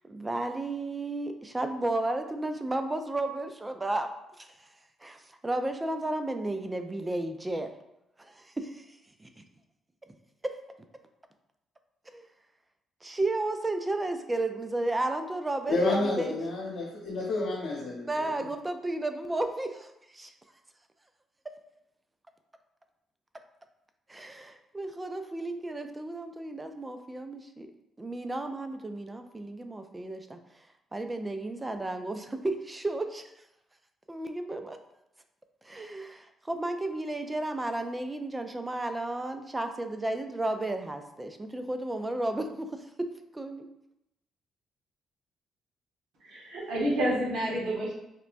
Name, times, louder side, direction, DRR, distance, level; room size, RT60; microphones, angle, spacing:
voice 1, 0.1-4.1 4.4-4.7 5.0-7.7 8.2-9.4 10.4-10.5 12.1-12.3 13.0-16.3 18.0-20.3 24.1-27.7 28.0-30.4 30.9-33.2 34.1-34.8 35.6-43.1 43.3-43.7, right 2 dB, 15° right, 7 dB, 0.3 m, -33 dB
voice 2, 15.7-18.3, left 2 dB, 85° left, -7 dB, 0.9 m, -30 dB
voice 3, 46.2-47.9, right 1 dB, 85° right, -4 dB, 1.2 m, -29 dB
4.3 x 2.1 x 2.5 m, 0.85 s
cardioid pair, 90°, 0 cm